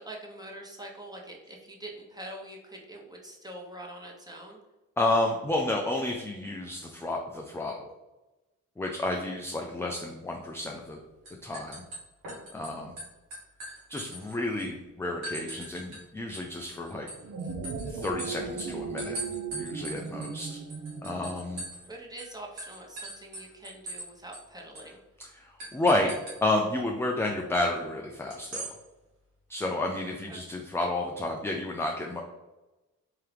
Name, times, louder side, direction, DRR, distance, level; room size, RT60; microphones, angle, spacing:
voice 1, 0.0-4.6 21.9-25.0 30.3-30.4, right 1 dB, 10° right, -1 dB, 1.1 m, -44 dB
voice 2, 5.0-7.9 8.8-11.0 11.4-11.8 12.5-13.0 13.9-17.1 17.9-19.2 19.6-20.6 21.0-21.6 25.3-28.7 29.5-32.2, left 2 dB, 10° left, 1 dB, 0.5 m, -31 dB
sound 1, 11.3-12.7 13.0-14.7 15.2-16.0 16.3-21.9 22.2-22.3 22.6-24.1 24.3-24.4 24.8-24.9 25.6-26.4 28.3-28.7, right 1 dB, 85° right, 1.5 m, -41 dB
sound 2, 17.1-21.7, right 5 dB, 50° right, 0.7 m, -37 dB
3.7 x 2.8 x 3.3 m, 1.0 s
supercardioid pair, 55°, 34 cm